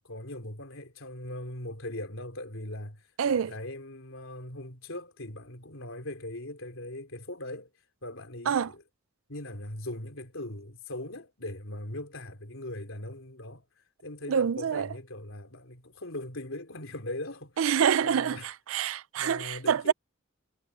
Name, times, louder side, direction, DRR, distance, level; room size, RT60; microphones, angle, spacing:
voice 1, 0.0-7.7 8.0-8.8 9.3-13.7 14.0-17.6 18.0-18.5 19.2-19.9, left 1 dB, 70° left, 3.6 m, -40 dB
voice 2, 3.2-3.5 8.5-8.7 14.3-14.9 17.6-19.9, right 7 dB, 75° right, 0.4 m, -26 dB
head